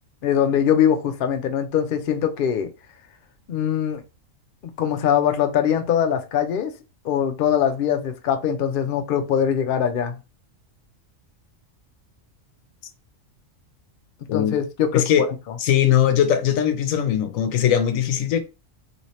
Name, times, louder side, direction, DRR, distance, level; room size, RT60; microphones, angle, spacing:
voice 1, 0.2-2.7 3.5-4.0 4.6-6.7 7.0-10.2 14.3-15.1, left 9 dB, 60° left, 0.6 m, -22 dB
voice 2, 14.9-15.2 15.6-18.4, left 10 dB, 90° left, 1.0 m, -20 dB
3.1 x 2.8 x 3.0 m
omnidirectional pair, 1.4 m